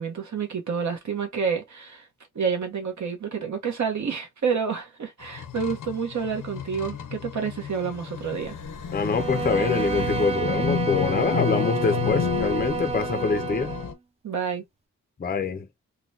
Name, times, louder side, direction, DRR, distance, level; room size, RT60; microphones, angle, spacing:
voice 1, 0.0-2.1 2.3-8.6 14.2-14.6, right 6 dB, 65° right, 1.1 m, -29 dB
sound 1, 5.2-13.9, left 8 dB, 85° left, 0.8 m, -31 dB
voice 2, 8.9-13.7 15.2-15.7, left 5 dB, 30° left, 0.5 m, -25 dB
Bowed string instrument, 9.0-13.9, right 7 dB, 20° right, 0.5 m, -30 dB
3.8 x 2.2 x 2.7 m
wide cardioid pair, 110°, 31 cm